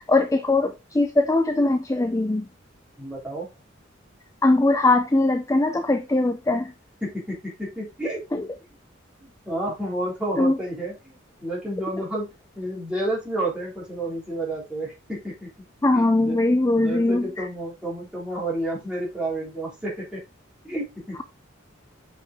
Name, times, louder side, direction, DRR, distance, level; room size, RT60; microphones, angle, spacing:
voice 1, 0.0-2.5 4.4-6.7 8.3-8.5 10.4-10.6 15.8-17.4, left 2 dB, 15° left, 0.4 m, -21 dB
voice 2, 3.0-3.5 7.0-8.2 9.2-12.3 12.5-15.5 15.9-16.4 16.7-20.2 20.6-21.2, right 1 dB, 5° right, 3.5 m, -30 dB
6.5 x 5.4 x 3.6 m
head